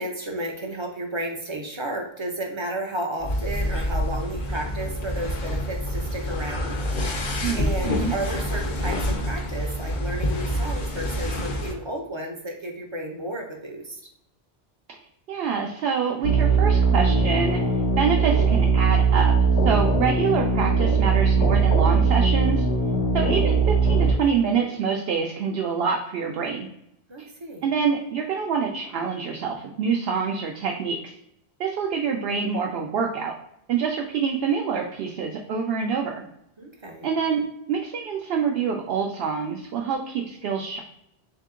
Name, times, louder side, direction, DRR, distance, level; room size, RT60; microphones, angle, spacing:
voice 1, 0.0-6.8 7.1-7.3 7.6-14.0 27.1-27.7 36.6-37.1, right 1 dB, 35° right, 1 dB, 0.5 m, -33 dB
sound 1, 3.2-11.7, equal, 55° left, 0.7 m, -27 dB
voice 2, 7.4-8.1 15.3-17.6 18.0-19.3 19.6-22.6 23.1-26.7 27.2-27.3 27.6-31.1 31.6-33.3 33.7-36.2 37.0-37.4 37.7-40.8, right 6 dB, 75° right, 1 dB, 0.8 m, -26 dB
sound 2, 16.2-24.1, right 4 dB, 80° left, 0.9 m, -20 dB
3.6 x 2.8 x 3.6 m, 0.77 s
omnidirectional pair, 1.0 m